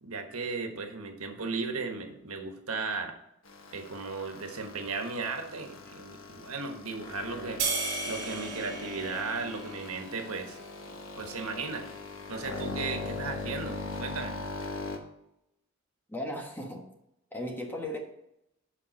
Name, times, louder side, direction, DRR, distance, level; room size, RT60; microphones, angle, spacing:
voice 1, 0.0-3.1 3.7-7.6 8.1-10.6 11.2-11.8 12.3-14.4, right 4 dB, 90° right, 4 dB, 1.4 m, -36 dB
sound 1, 3.5-15.0, left 3 dB, 65° left, 1.2 m, -40 dB
sound 2, 7.6-10.2, right 4 dB, 55° right, 2.5 m, -34 dB
voice 2, 16.1-16.8 17.3-18.0, left 1 dB, 10° left, 1 dB, 1.2 m, -36 dB
7.7 x 5.4 x 5.2 m, 0.82 s
head